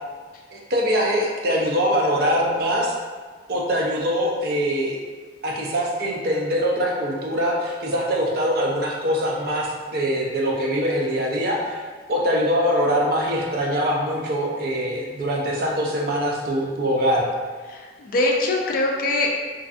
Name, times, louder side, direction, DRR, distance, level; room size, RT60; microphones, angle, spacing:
voice 1, 0.5-2.9 3.5-5.0 5.4-11.8 12.1-17.3, equal, 60° right, -2 dB, 0.5 m, -23 dB
voice 2, 17.7-19.4, left 2 dB, 50° left, -1 dB, 0.4 m, -23 dB
2.5 x 2.3 x 2.4 m, 1.5 s
head